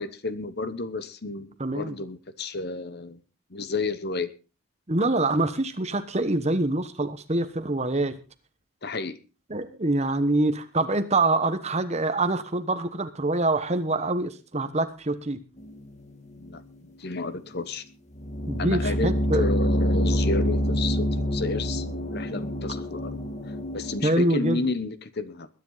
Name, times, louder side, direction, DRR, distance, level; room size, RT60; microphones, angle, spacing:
voice 1, 0.0-3.2 3.5-4.3 8.8-9.2 16.4-16.6 17.0-17.8 18.6-21.8 22.1-23.2 23.7-25.5, left 3 dB, 50° left, 13 dB, 1.0 m, -31 dB
voice 2, 1.6-2.0 4.9-8.1 9.5-15.4 18.5-19.5 24.0-24.6, right 2 dB, 30° right, 10 dB, 1.1 m, -25 dB
sound 1, 15.6-15.9 16.4-16.5 18.2-24.1, equal, 30° left, 1.6 m, -26 dB
21.0 x 10.0 x 4.0 m, 0.33 s
head